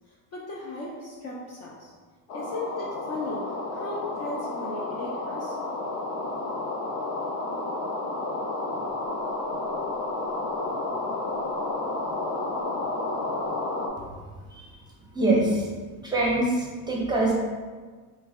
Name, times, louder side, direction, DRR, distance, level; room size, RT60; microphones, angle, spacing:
voice 1, 0.1-1.9 2.3-5.6, left 2 dB, 35° left, -3 dB, 0.4 m, -37 dB
sound 1, 2.3-13.9, left 2 dB, 80° left, 0.7 m, -31 dB
voice 2, 15.1-15.7 16.0-17.3, right 2 dB, 10° right, -4 dB, 0.6 m, -24 dB
3.2 x 2.2 x 3.4 m, 1.5 s
supercardioid pair, 110°, 48 cm